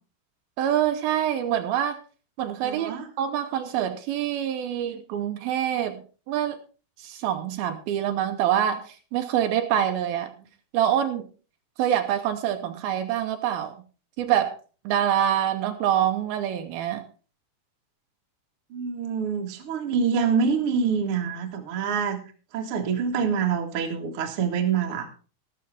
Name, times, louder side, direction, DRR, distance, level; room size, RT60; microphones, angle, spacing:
voice 1, 0.6-2.0 2.4-6.6 7.0-10.3 10.7-11.3 11.8-13.7 14.2-14.6 14.8-17.0, right 10 dB, 75° right, 7 dB, 2.6 m, -25 dB
voice 2, 2.6-3.1 12.6-12.8 18.7-22.2 22.5-25.1, right 6 dB, 50° right, 3 dB, 1.7 m, -26 dB
13.5 x 13.0 x 3.5 m, 0.36 s
omnidirectional pair, 4.6 m